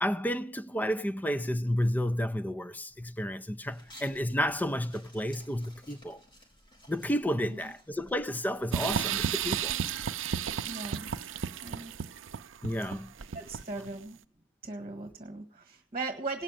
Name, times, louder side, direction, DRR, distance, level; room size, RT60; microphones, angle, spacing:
voice 1, 0.0-6.2 6.9-9.8 12.6-13.1, equal, 10° left, 0.6 m, -31 dB
sound 1, 3.7-12.1, equal, 25° left, 4.7 m, -57 dB
sound 2, 8.7-13.9, right 8 dB, 75° right, 0.6 m, -33 dB
voice 2, 10.6-11.1 11.6-11.9 13.3-14.2 14.6-16.4, right 3 dB, 30° right, 1.5 m, -38 dB
18.0 x 6.5 x 8.9 m
head